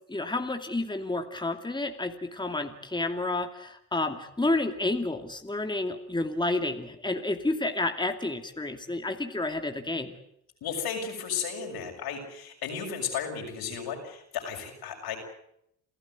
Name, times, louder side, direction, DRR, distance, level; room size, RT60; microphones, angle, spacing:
voice 1, 0.1-10.2, left 2 dB, 10° left, 6 dB, 2.5 m, -30 dB
voice 2, 10.6-15.2, left 7 dB, 80° left, 3 dB, 6.7 m, -34 dB
28.5 x 15.0 x 9.4 m, 0.76 s
supercardioid pair, 70°, 37 cm